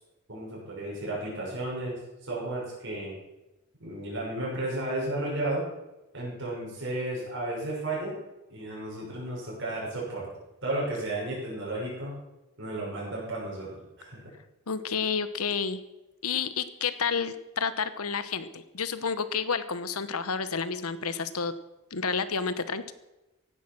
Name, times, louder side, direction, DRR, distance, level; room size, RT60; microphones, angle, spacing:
voice 1, 0.3-3.1 3.8-5.7 6.1-8.2 8.5-10.3 10.6-12.1 12.6-13.7 14.0-14.2, right 1 dB, 55° right, -5 dB, 6.3 m, -33 dB
voice 2, 14.7-15.8 16.2-21.5 21.9-22.9, left 5 dB, 80° left, 13 dB, 1.1 m, -30 dB
16.0 x 11.5 x 6.2 m, 1.0 s
head